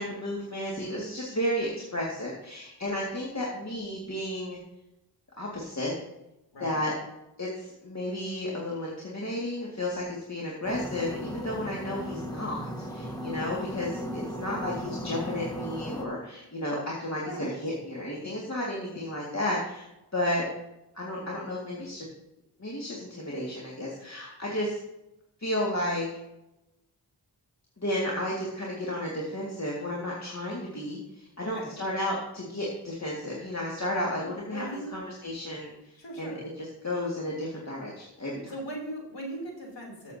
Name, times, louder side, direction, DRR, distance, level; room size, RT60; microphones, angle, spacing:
voice 1, 0.0-4.6 5.4-5.9 6.6-6.9 7.4-19.9 20.1-20.4 20.9-22.1 22.6-24.8 25.4-26.0 27.8-38.5, left 1 dB, 40° left, -4 dB, 2.2 m, -33 dB
sound 1, 10.6-16.0, equal, 10° left, 1.3 m, -36 dB
voice 2, 17.2-17.6 31.4-31.8 34.2-35.0 35.9-36.4 38.5-40.2, right 1 dB, 85° left, -1 dB, 3.4 m, -39 dB
13.5 x 7.2 x 2.8 m, 0.91 s
wide cardioid pair, 55°, 43 cm